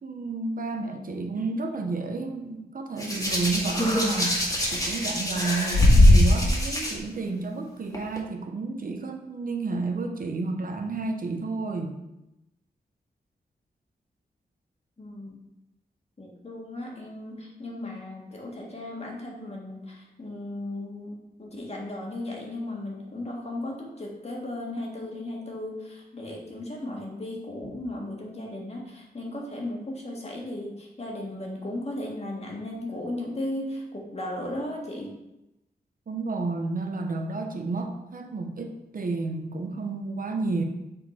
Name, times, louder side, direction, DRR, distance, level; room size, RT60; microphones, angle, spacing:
voice 1, 0.0-12.0 36.1-40.6, right 3 dB, 55° right, 4 dB, 0.8 m, -31 dB
Hands, 3.0-6.9 7.9-8.2, left 1 dB, 20° left, 2.0 m, -21 dB
voice 2, 15.0-15.4 16.2-35.2, left 1 dB, 40° left, -1 dB, 1.7 m, -36 dB
6.6 x 4.2 x 4.3 m, 0.92 s
cardioid pair, 70°, 17 cm